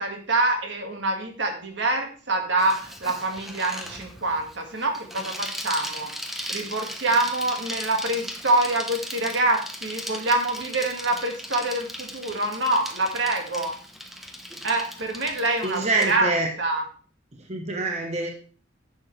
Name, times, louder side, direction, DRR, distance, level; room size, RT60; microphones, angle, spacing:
voice 1, 0.0-6.1 6.5-13.7 14.6-16.3 16.6-16.8, right 2 dB, 65° right, 3 dB, 1.9 m, -25 dB
Bicycle, 2.6-16.2, equal, ahead, 1.0 m, -37 dB
voice 2, 15.6-16.5 17.5-18.3, right 2 dB, 35° right, 1 dB, 1.1 m, -25 dB
10.0 x 7.0 x 3.3 m, 0.41 s
head